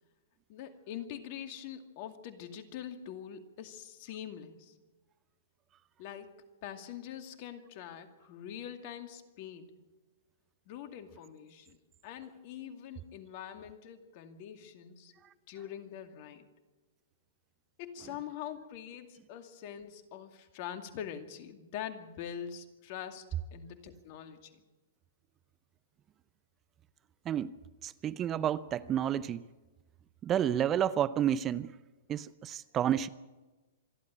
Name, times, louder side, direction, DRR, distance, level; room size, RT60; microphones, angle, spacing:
voice 1, 0.5-4.7 6.0-9.7 10.7-11.8 12.0-15.1 15.5-16.5 17.8-24.6, left 9 dB, 50° left, 7 dB, 2.3 m, -44 dB
voice 2, 27.8-29.4 30.2-31.7 32.1-33.1, right 10 dB, 25° right, 17 dB, 0.6 m, -30 dB
26.0 x 11.5 x 8.7 m, 1.2 s
hypercardioid pair, 120°, 0 cm